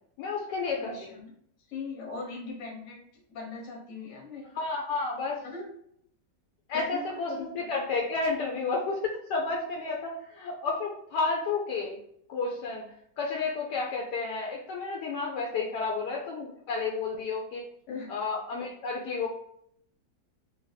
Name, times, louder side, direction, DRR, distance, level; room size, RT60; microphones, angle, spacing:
voice 1, 0.2-1.1 4.6-5.4 6.7-12.0 12.3-12.8 13.2-17.6 18.1-19.3, left 4 dB, 80° left, -1 dB, 1.2 m, -31 dB
voice 2, 0.8-1.3 1.7-3.0 3.3-4.5 5.4-5.7 6.7-7.0 7.3-7.7 17.9-18.1, left 4 dB, 55° left, 0 dB, 1.2 m, -39 dB
3.2 x 2.6 x 3.9 m, 0.69 s
omnidirectional pair, 1.9 m